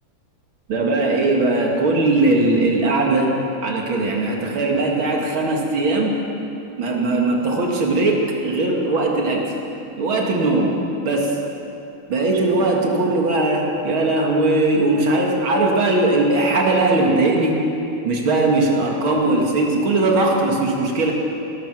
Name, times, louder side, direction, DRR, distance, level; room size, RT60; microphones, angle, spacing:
voice 1, 0.7-3.3 3.6-6.1 6.8-9.5 10.0-10.7 11.0-11.4 12.1-17.6 18.0-21.1, right 2 dB, 70° right, 0 dB, 2.6 m, -19 dB
16.5 x 13.5 x 6.0 m, 2.8 s
omnidirectional pair, 2.4 m